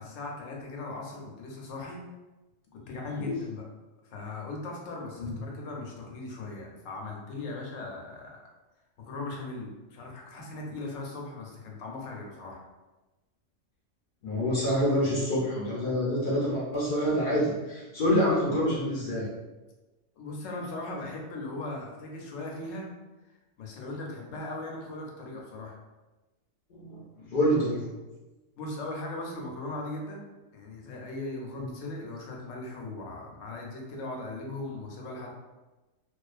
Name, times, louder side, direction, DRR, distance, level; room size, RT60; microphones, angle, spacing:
voice 1, 0.0-2.0 2.7-3.7 4.0-8.4 9.0-12.6 20.2-22.9 23.6-25.7 28.6-30.3 30.5-35.3, left 2 dB, 85° left, -1 dB, 1.0 m, -38 dB
voice 2, 14.2-19.3 26.7-27.8, equal, 60° left, -6 dB, 0.6 m, -27 dB
2.4 x 2.2 x 2.4 m, 1.1 s
omnidirectional pair, 1.3 m